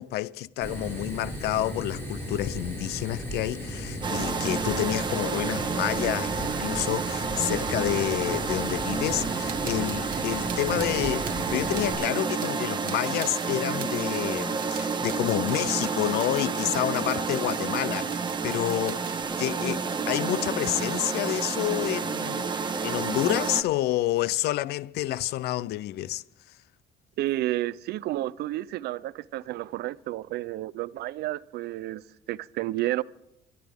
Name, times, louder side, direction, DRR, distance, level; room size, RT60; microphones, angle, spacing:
voice 1, 0.0-18.2 18.4-19.1 19.4-22.5 22.8-26.2, left 14 dB, 75° left, 0.5 m, -29 dB
Fire, 0.6-11.9, equal, 15° left, 7.1 m, -36 dB
sound 1, 4.0-23.6, right 5 dB, 25° right, 1.4 m, -30 dB
sound 2, 9.4-19.2, right 9 dB, 55° right, 1.5 m, -44 dB
voice 2, 27.2-33.0, right 15 dB, 75° right, 0.6 m, -31 dB
25.0 x 13.0 x 3.6 m
cardioid pair, 110°, 17 cm